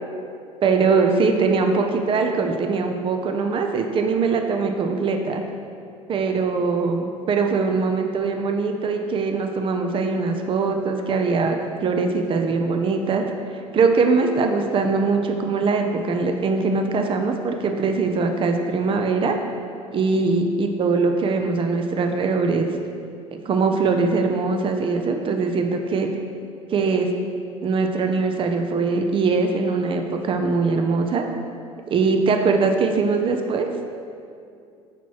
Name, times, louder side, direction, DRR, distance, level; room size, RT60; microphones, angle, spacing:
voice 1, 0.6-5.4 6.1-13.2 13.7-19.4 19.9-22.7 23.5-26.1 26.7-27.1 27.6-31.3 31.9-33.7, right 4 dB, 30° right, 4 dB, 0.6 m, -22 dB
6.0 x 4.0 x 4.5 m, 2.5 s
figure-of-eight pair, 65°, 17 cm